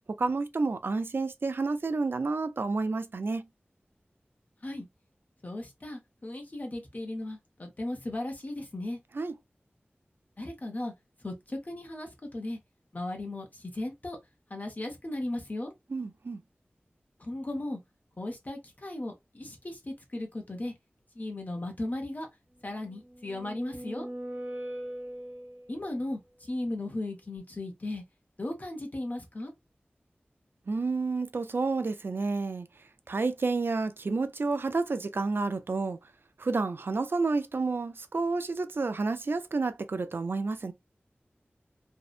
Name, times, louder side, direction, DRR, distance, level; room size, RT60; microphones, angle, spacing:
voice 1, 0.2-3.5 9.1-9.3 15.9-16.4 30.7-32.7 33.1-36.0 36.4-40.7, right 3 dB, 65° right, 0.3 m, -30 dB
voice 2, 5.4-9.0 10.4-10.9 11.2-12.6 12.9-14.2 14.5-15.7 17.2-17.8 18.2-20.7 21.2-22.3 22.6-24.1 25.7-28.0 28.4-29.5, left 1 dB, 45° left, 0.7 m, -36 dB
sound 1, 22.9-25.9, right 1 dB, 45° right, 1.2 m, -40 dB
2.6 x 2.0 x 2.4 m
wide cardioid pair, 65°, 4 cm